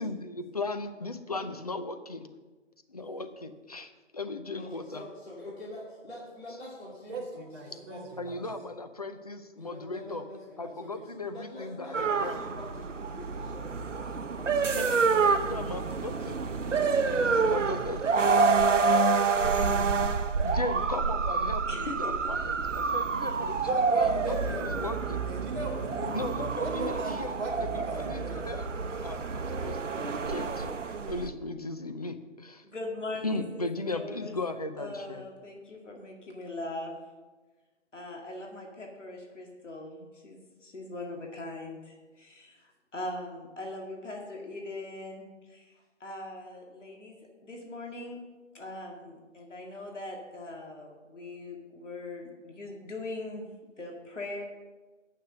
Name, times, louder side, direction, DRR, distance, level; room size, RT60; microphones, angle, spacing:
voice 1, 0.0-2.3 2.9-5.0 8.2-10.2 10.6-12.4 14.8-16.4 16.7-18.5 18.9-19.0 19.8-20.0 20.4-23.7 24.3-25.2 26.1-28.7 29.0-32.7 33.2-35.2, left 2 dB, 30° left, 9 dB, 0.5 m, -37 dB
voice 2, 4.6-7.4 7.7-8.6 9.6-14.9, left 1 dB, 55° left, -6 dB, 2.8 m, -45 dB
voice 3, 7.1-8.4 23.6-24.9 25.3-28.4, right 2 dB, 20° right, -4 dB, 1.5 m, -38 dB
sound 1, 11.9-31.3, right 4 dB, 80° right, 0.9 m, -28 dB
voice 4, 21.7-22.2 32.6-33.7 33.9-34.3 34.8-36.9 37.9-45.7 46.0-48.2 48.5-53.4 53.8-54.4, left 2 dB, 75° left, 0 dB, 2.3 m, -40 dB
9.7 x 6.7 x 6.7 m, 1.3 s
hypercardioid pair, 165°, 37 cm